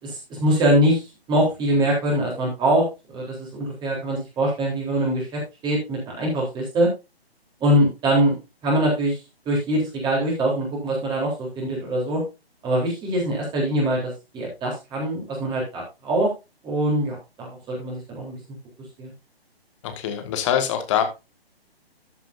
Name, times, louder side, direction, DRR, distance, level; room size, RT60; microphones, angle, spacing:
voice 1, 0.0-6.9 7.6-8.3 8.6-9.2 9.5-12.2 12.6-16.3 16.6-18.4 19.0-19.1, right 1 dB, 15° right, -2 dB, 3.7 m, -23 dB
voice 2, 19.8-21.0, left 9 dB, 30° left, 7 dB, 1.9 m, -24 dB
13.5 x 7.5 x 2.7 m, 0.25 s
figure-of-eight pair, 140°, 31 cm